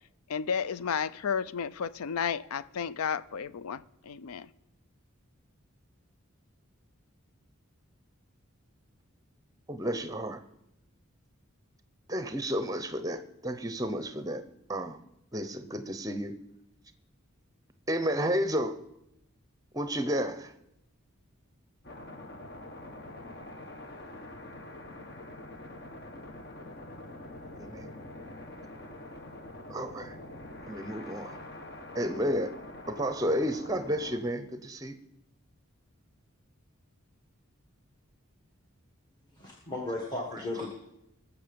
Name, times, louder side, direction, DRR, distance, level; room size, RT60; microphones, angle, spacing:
voice 1, 0.3-4.5, left 7 dB, 85° left, 0.4 m, -32 dB
voice 2, 9.7-10.4 12.1-14.4 14.7-15.0 15.3-16.4 17.9-18.8 19.7-20.5 27.6-27.9 29.7-30.2 30.7-31.4 31.9-32.5 32.9-35.0, equal, 15° right, 0.7 m, -31 dB
sound 1, 21.8-34.2, left 1 dB, 50° left, 1.2 m, -45 dB
voice 3, 39.3-40.7, left 2 dB, 20° left, 1.5 m, -35 dB
20.5 x 7.0 x 5.2 m
head